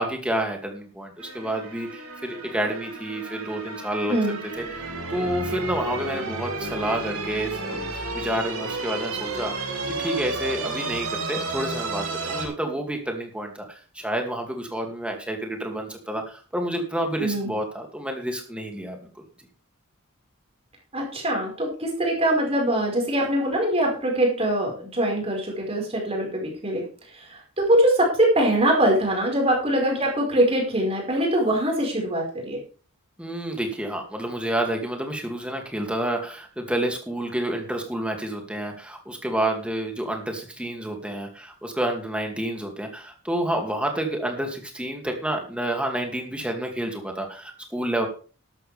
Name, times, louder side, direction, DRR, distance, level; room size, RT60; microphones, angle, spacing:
voice 1, 0.0-4.2 4.6-4.7 5.1-9.7 10.0-19.0 33.2-48.1, right 1 dB, 5° right, 2 dB, 2.5 m, -29 dB
sound 1, 1.2-12.4, right 3 dB, 75° right, 4.1 m, -32 dB
voice 2, 17.2-17.5 20.9-26.9 27.1-32.6, right 1 dB, 25° right, 0 dB, 5.1 m, -23 dB
13.0 x 12.5 x 3.5 m, 0.38 s
head